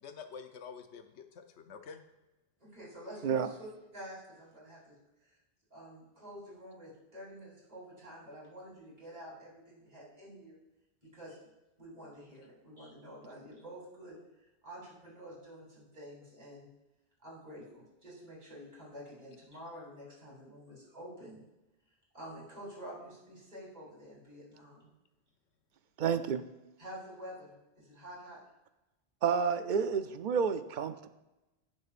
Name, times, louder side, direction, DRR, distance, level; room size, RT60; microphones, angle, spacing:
voice 1, 0.0-2.0, left 6 dB, 85° left, 7 dB, 1.0 m, -48 dB
voice 2, 2.6-3.7 3.9-4.9 5.2-5.3 5.7-10.6 11.0-11.4 11.8-16.7 17.2-21.4 22.1-24.9 26.8-28.4, equal, 40° right, -5 dB, 3.4 m, -49 dB
voice 3, 26.0-26.4 29.2-31.1, right 6 dB, 55° right, 10 dB, 0.6 m, -30 dB
16.5 x 6.6 x 2.5 m, 1.0 s
omnidirectional pair, 1.1 m